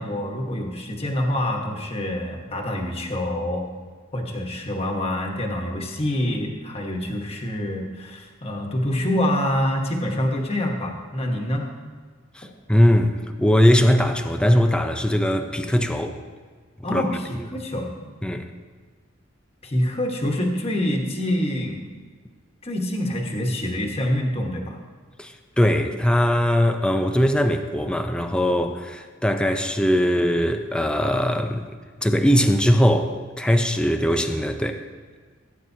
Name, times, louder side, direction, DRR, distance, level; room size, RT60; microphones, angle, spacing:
voice 1, 0.0-3.7 4.1-11.7 16.8-17.9 19.6-21.9 22.6-24.8, left 1 dB, 30° left, 1 dB, 1.3 m, -26 dB
voice 2, 12.3-13.1 13.4-16.2 16.9-17.0 18.2-18.5 25.2-31.7 32.0-34.8, equal, 5° left, 5 dB, 0.5 m, -20 dB
16.5 x 9.2 x 2.8 m, 1.5 s
head